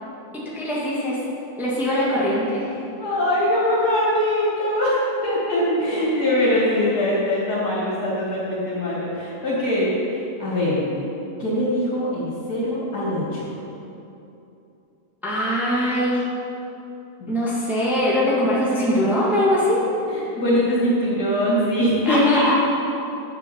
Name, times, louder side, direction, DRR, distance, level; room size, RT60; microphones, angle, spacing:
voice 1, 0.3-1.2 1.6-2.8 15.2-16.2 17.3-19.8 22.1-22.5, equal, ahead, -7 dB, 1.8 m, -22 dB
voice 2, 3.0-11.1 11.4-13.5 20.1-22.5, left 1 dB, 80° left, -8 dB, 2.8 m, -22 dB
8.8 x 7.5 x 7.0 m, 2.8 s
omnidirectional pair, 1.7 m